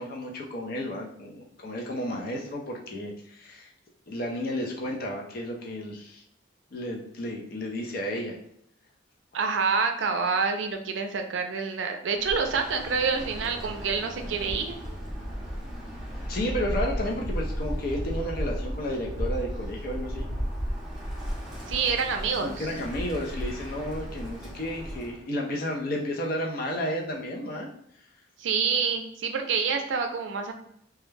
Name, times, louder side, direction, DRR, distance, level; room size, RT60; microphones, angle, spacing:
voice 1, 0.0-3.7 4.1-6.2 6.7-8.4 16.3-20.3 22.4-27.7, left 1 dB, 50° left, 0 dB, 0.5 m, -32 dB
voice 2, 9.3-14.7 21.7-22.7 28.4-30.5, right 5 dB, 75° right, 5 dB, 0.4 m, -27 dB
Bird, 12.1-25.2, equal, 5° right, 0.6 m, -34 dB
2.3 x 2.1 x 3.1 m, 0.70 s
head